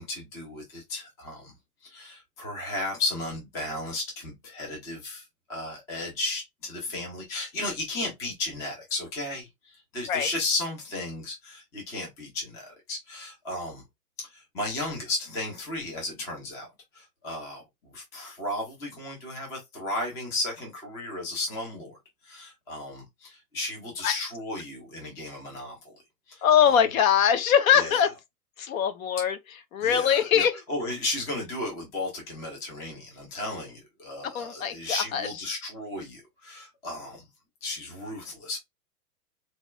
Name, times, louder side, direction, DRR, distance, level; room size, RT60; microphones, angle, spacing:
voice 1, 0.0-1.5 1.8-13.8 14.2-16.7 16.9-22.0 22.2-26.0 26.3-26.8 27.7-28.1 29.8-37.2 37.6-38.6, left 2 dB, 5° left, 0.4 m, -34 dB
voice 2, 26.4-28.1 28.6-29.4 29.7-30.5 34.2-35.3, left 8 dB, 60° left, 0.8 m, -22 dB
4.0 x 2.2 x 2.3 m
hypercardioid pair, 135°, 47 cm